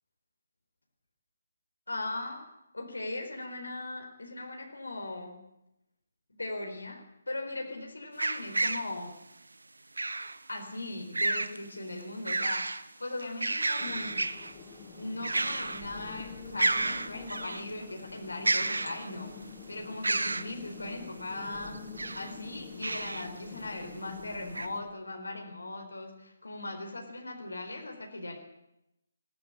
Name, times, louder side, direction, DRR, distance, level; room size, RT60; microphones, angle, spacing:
voice 1, 1.9-2.4 2.7-5.4 6.4-9.1 10.5-12.7 13.0-14.2 15.0-19.3 19.7-21.8 22.1-28.4, left 2 dB, 70° left, 3 dB, 4.2 m, -39 dB
sound 1, 8.2-8.9 10.0-10.4 11.1-11.6 12.0-12.8 13.2-14.5 15.2-15.9 16.2-16.3 16.6-17.6 18.4-19.3 20.0-20.5 21.8-22.3 22.8-23.3 23.8-23.9 24.5-24.7, right 2 dB, 70° right, 1.0 m, -31 dB
sound 2, 13.8-24.8, left 5 dB, 20° left, 4.2 m, -46 dB
19.0 x 16.5 x 9.9 m, 0.86 s
figure-of-eight pair, 145°, 0 cm